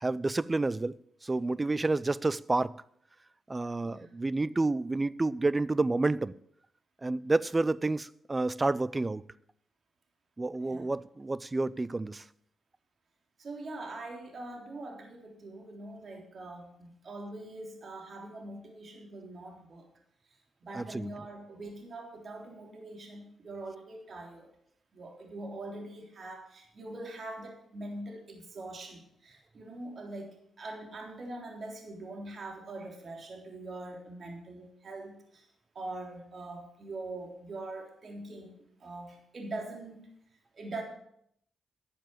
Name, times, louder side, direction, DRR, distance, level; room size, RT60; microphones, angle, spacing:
voice 1, 0.0-2.8 3.5-6.3 7.0-9.2 10.4-12.2 20.7-21.1, right 2 dB, 25° right, 0.5 m, -29 dB
voice 2, 10.6-11.0 13.4-19.9 20.6-24.5 24.9-35.5 35.7-40.0 40.5-40.8, right 2 dB, 55° right, 3.3 m, -43 dB
12.0 x 7.2 x 7.6 m
cardioid pair, 75°, 0 cm